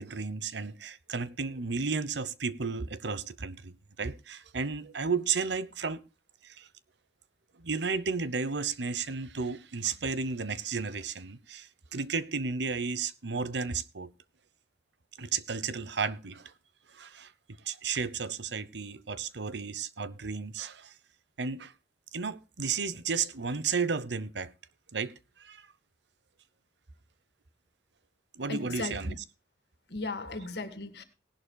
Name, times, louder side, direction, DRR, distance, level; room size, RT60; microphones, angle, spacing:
voice 1, 0.0-6.0 6.4-6.7 7.6-14.1 15.2-16.5 16.9-17.3 17.6-20.9 21.4-21.7 22.1-24.5 24.9-25.1 25.4-25.7 28.4-29.2, right 5 dB, 85° right, 0.9 m, -33 dB
voice 2, 28.5-29.2 29.9-31.0, left 3 dB, 70° left, 1.9 m, -36 dB
18.5 x 11.5 x 2.3 m
head